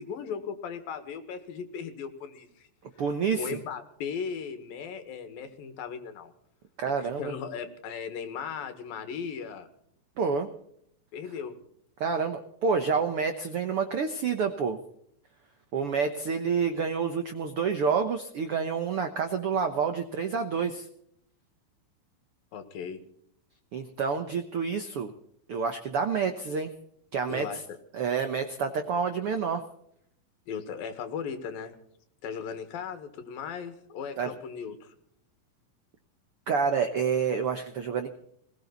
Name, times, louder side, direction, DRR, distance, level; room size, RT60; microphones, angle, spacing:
voice 1, 0.0-2.7 3.4-6.3 7.0-9.7 11.1-11.6 22.5-23.0 27.3-27.8 30.5-31.8 32.2-34.9, left 6 dB, 80° left, 9 dB, 3.4 m, -37 dB
voice 2, 3.0-3.6 6.8-7.3 10.2-10.5 12.0-14.8 15.7-20.9 23.7-25.1 25.5-26.7 27.1-27.6 27.9-29.6 34.2-34.3 36.5-38.1, right 6 dB, 70° right, 7 dB, 1.3 m, -28 dB
20.5 x 17.5 x 4.0 m, 0.69 s
omnidirectional pair, 4.1 m